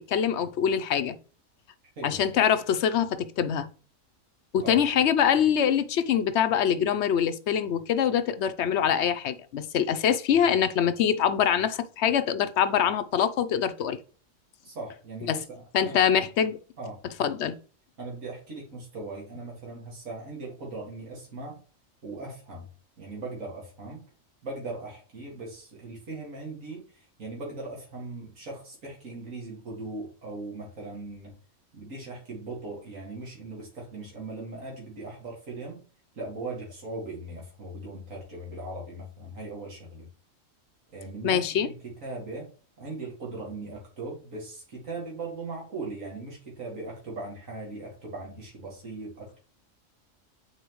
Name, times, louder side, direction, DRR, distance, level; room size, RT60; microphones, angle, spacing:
voice 1, 0.1-1.2 2.0-3.7 4.5-14.0 15.3-15.4 15.7-16.6 17.2-17.6 41.2-41.7, left 8 dB, 65° left, 0.9 m, -24 dB
voice 2, 14.6-16.1 16.8-17.0 18.0-21.6 22.0-22.7 23.0-24.0 24.4-31.3 31.7-35.8 36.1-40.1 40.9-42.5 42.8-49.4, right 2 dB, 75° right, 2.4 m, -39 dB
8.2 x 4.2 x 3.0 m
omnidirectional pair, 1.4 m